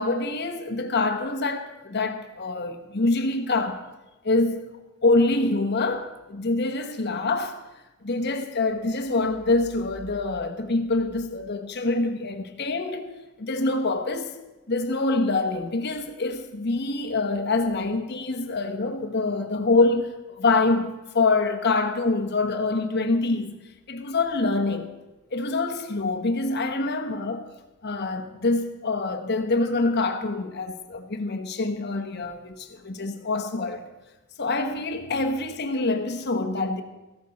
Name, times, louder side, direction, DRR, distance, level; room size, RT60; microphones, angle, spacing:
voice 1, 0.0-3.8 4.2-4.7 5.0-7.6 8.0-13.1 13.4-14.3 14.7-23.6 23.9-24.9 25.3-27.5 27.8-33.8 34.4-36.8, left 3 dB, 55° left, 1.2 m, -25 dB
15.0 x 12.5 x 4.2 m
head